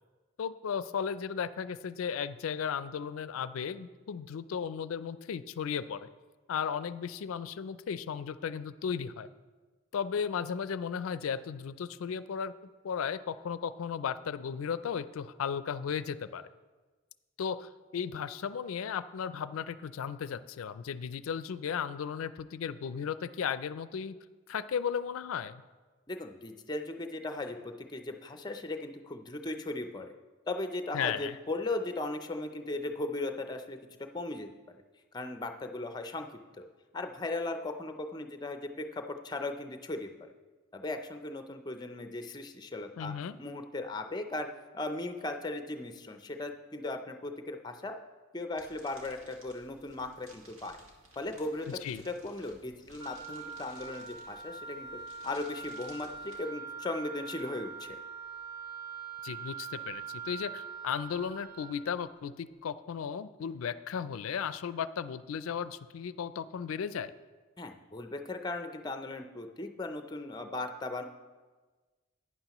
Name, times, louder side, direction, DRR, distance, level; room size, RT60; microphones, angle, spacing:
voice 1, 0.4-6.1 6.5-9.3 9.9-12.5 12.8-16.4 17.4-24.2 24.5-25.6 30.9-31.4 43.0-43.4 51.8-52.0 59.2-67.1, left 7 dB, 85° left, 14 dB, 0.4 m, -35 dB
voice 2, 26.1-30.1 30.5-33.8 34.1-34.5 35.1-36.3 36.6-36.7 36.9-40.1 40.7-43.1 43.4-44.5 44.7-48.0 48.3-50.8 51.2-51.8 52.1-54.9 55.2-58.0 67.6-71.0, left 2 dB, 20° left, 6 dB, 0.5 m, -37 dB
sound 1, 48.6-56.4, right 1 dB, 75° right, 1.7 m, -57 dB
Wind instrument woodwind instrument, 53.0-61.8, right 6 dB, 20° right, 1.3 m, -43 dB
11.5 x 9.5 x 3.0 m, 1.3 s
head